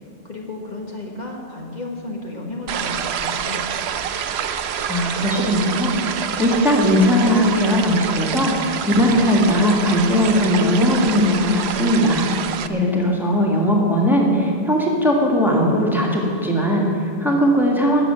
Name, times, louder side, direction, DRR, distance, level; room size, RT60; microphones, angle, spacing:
voice 1, 0.2-3.6 12.6-12.9, left 2 dB, 45° left, -1 dB, 1.5 m, -33 dB
sound 1, 2.7-12.7, right 8 dB, 90° right, 0.9 m, -27 dB
voice 2, 4.9-12.3 12.7-18.0, equal, ahead, -2 dB, 1.9 m, -19 dB
14.0 x 6.9 x 9.0 m, 2.8 s
omnidirectional pair, 1.0 m